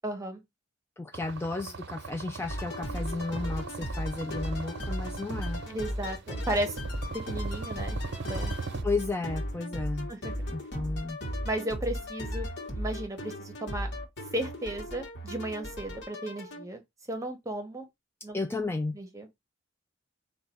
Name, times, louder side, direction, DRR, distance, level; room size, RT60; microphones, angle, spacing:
voice 1, 0.0-0.4 5.7-6.8 7.1-8.0 8.3-8.5 10.1-10.3 11.4-12.5 12.7-13.9 14.3-16.8 17.1-17.9 18.2-18.7 18.9-19.3, right 1 dB, 15° right, 0.9 m, -34 dB
voice 2, 1.0-5.6 8.8-10.1 10.5-11.2 18.3-19.0, left 3 dB, 10° left, 0.3 m, -33 dB
sound 1, 1.1-8.8, right 4 dB, 60° right, 0.6 m, -40 dB
sound 2, 2.5-16.6, equal, 60° left, 1.2 m, -36 dB
4.0 x 2.3 x 4.2 m
head